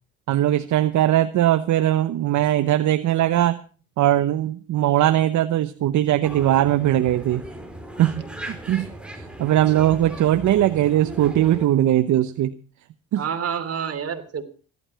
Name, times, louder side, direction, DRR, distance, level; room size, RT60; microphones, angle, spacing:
voice 1, 0.3-3.6 4.0-7.4 8.0-8.9 9.2-12.5 13.1-13.3, right 12 dB, 70° right, 11 dB, 0.9 m, -20 dB
sound 1, 6.2-11.7, right 1 dB, 5° right, 4.1 m, -38 dB
voice 2, 9.5-9.9 13.2-14.4, right 7 dB, 50° right, 7 dB, 3.2 m, -29 dB
16.5 x 12.0 x 5.7 m, 0.38 s
cardioid pair, 90°, 30 cm